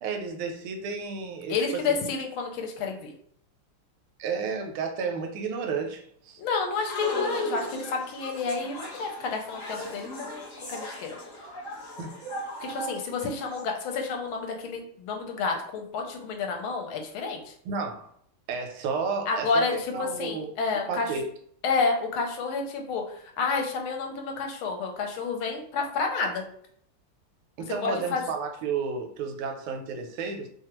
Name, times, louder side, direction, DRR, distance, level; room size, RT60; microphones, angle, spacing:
voice 1, 0.0-1.6 4.2-6.4 12.0-12.4 17.6-18.1 18.5-19.6 19.9-20.5 20.9-21.3 27.6-30.5, right 5 dB, 80° right, 4 dB, 1.5 m, -32 dB
voice 2, 1.5-3.1 6.4-11.2 12.6-17.5 19.3-21.1 21.6-26.4 27.8-28.2, left 4 dB, 75° left, 2 dB, 1.4 m, -30 dB
sound 1, 6.7-13.6, left 2 dB, 50° left, 1.1 m, -36 dB
3.3 x 2.3 x 2.9 m, 0.64 s
omnidirectional pair, 2.4 m